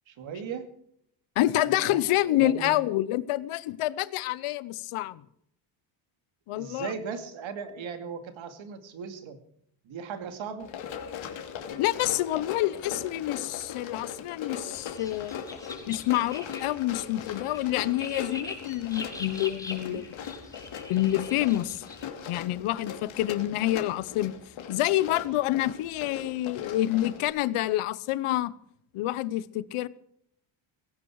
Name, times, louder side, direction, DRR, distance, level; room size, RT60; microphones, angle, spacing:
voice 1, 0.1-0.7 1.6-2.8 6.6-9.4 9.8-10.7 19.9-20.0, right 6 dB, 70° right, 2.5 m, -38 dB
voice 2, 1.4-5.2 6.5-6.9 11.8-15.4 15.9-20.1 20.9-21.8 22.3-24.4 24.7-28.5 28.9-29.9, left 15 dB, 90° left, 1.0 m, -27 dB
Run, 10.6-27.3, left 7 dB, 65° left, 2.8 m, -40 dB
sound 1, 14.7-22.1, left 2 dB, 5° left, 5.8 m, -43 dB
18.0 x 16.5 x 4.8 m
cardioid pair, 130°, 49 cm